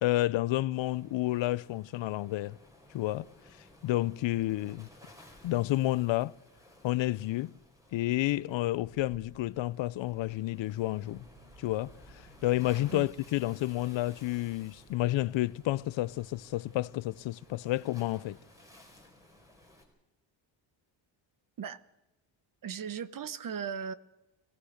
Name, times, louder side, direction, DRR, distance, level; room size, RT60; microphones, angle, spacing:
voice 1, 0.0-2.6 2.9-3.3 3.8-4.9 5.4-6.3 6.8-7.5 7.9-11.3 11.6-18.4, left 16 dB, 70° left, 0.6 m, -30 dB
Waves surf, 0.7-19.8, left 1 dB, 5° right, 4.5 m, -57 dB
sound 1, 8.8-19.2, right 3 dB, 80° right, 3.5 m, -61 dB
voice 2, 22.6-23.9, right 7 dB, 45° right, 0.9 m, -37 dB
25.0 x 17.0 x 6.5 m
cardioid pair, 155°, 47 cm